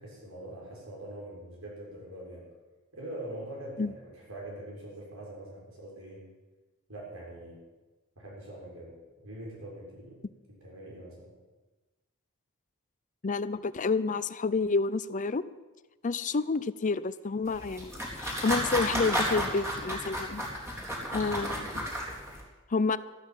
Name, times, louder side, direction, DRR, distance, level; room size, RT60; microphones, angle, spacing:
voice 1, 0.0-2.5 2.9-6.3 6.9-7.6 8.1-9.0 9.2-10.2 10.5-11.3 21.3-21.7, right 1 dB, 85° right, -3 dB, 6.5 m, -43 dB
voice 2, 13.2-15.4 16.0-20.4 21.1-21.7 22.7-23.0, left 4 dB, 35° left, 15 dB, 0.5 m, -29 dB
sound 1, 17.5-22.4, equal, 15° right, 3.7 m, -33 dB
13.5 x 12.5 x 7.4 m, 1.2 s
head